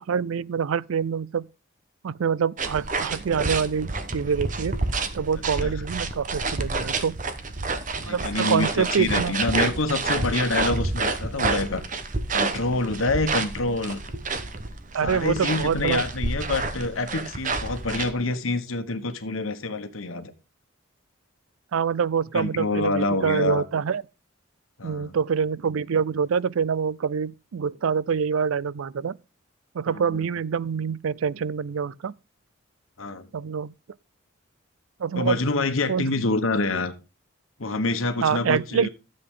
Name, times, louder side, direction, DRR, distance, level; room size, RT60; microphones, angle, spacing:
voice 1, 0.0-1.5 2.0-4.8 5.1-7.2 8.1-9.3 14.9-16.0 21.7-24.0 24.8-29.1 29.7-32.1 33.3-33.7 35.0-35.4 35.9-36.0 38.2-38.9, right 6 dB, 85° right, 0.4 m, -26 dB
sound 1, 2.6-18.1, right 3 dB, 40° right, 1.1 m, -29 dB
voice 2, 8.0-11.8 12.3-14.0 15.0-20.3 22.3-23.6 24.8-25.1 29.9-30.2 33.0-33.3 35.1-36.9 37.6-38.9, left 2 dB, 85° left, 1.3 m, -26 dB
13.0 x 7.7 x 3.8 m
head